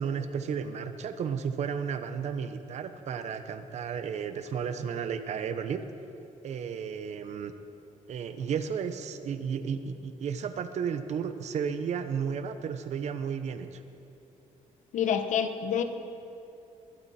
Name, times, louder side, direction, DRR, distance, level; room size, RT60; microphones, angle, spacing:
voice 1, 0.0-5.8 6.4-7.5 8.1-13.8, right 7 dB, 55° right, 9 dB, 0.9 m, -33 dB
voice 2, 14.9-15.8, left 8 dB, 65° left, 8 dB, 1.0 m, -27 dB
21.0 x 12.5 x 4.3 m, 2.7 s
cardioid pair, 155°, 13 cm